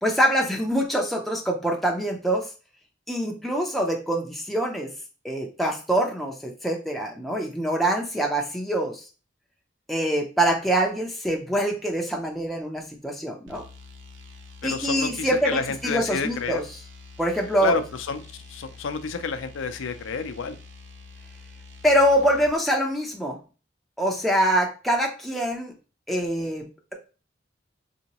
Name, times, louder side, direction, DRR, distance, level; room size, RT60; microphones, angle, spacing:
voice 1, 0.0-2.5 3.1-4.9 5.2-9.0 9.9-13.6 14.6-16.6 17.2-17.7 21.8-23.4 24.0-25.7 26.1-26.9, right 1 dB, ahead, 0 dB, 0.4 m, -24 dB
sound 1, 13.5-22.6, left 3 dB, 80° right, 0.5 m, -46 dB
voice 2, 14.6-16.6 17.6-18.2 18.5-20.6, left 5 dB, 85° left, 9 dB, 0.4 m, -29 dB
3.6 x 2.8 x 2.9 m, 0.34 s
head